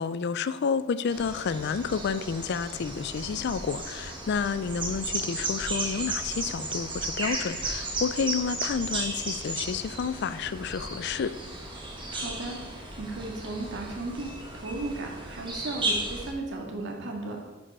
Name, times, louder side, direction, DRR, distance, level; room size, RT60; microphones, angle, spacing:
voice 1, 0.0-11.3, left 6 dB, 55° left, 14 dB, 0.4 m, -30 dB
sound 1, 1.1-16.3, right 2 dB, 25° right, 1.6 m, -34 dB
voice 2, 12.1-17.5, right 2 dB, 60° right, 1 dB, 1.9 m, -36 dB
10.0 x 5.5 x 5.4 m, 1.2 s
head